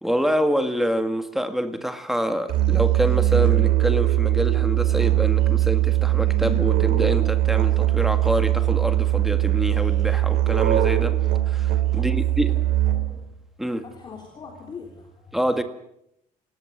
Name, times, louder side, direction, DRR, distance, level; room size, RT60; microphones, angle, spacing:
voice 1, 0.0-11.2 11.5-12.6 13.6-13.8 15.3-15.6, equal, ahead, 1.7 m, -26 dB
Musical instrument, 2.5-13.3, right 14 dB, 85° right, 3.2 m, -21 dB
voice 2, 11.9-13.3 13.8-15.4, left 4 dB, 30° left, 3.8 m, -43 dB
28.0 x 17.0 x 7.8 m
cardioid pair, 165°, 14 cm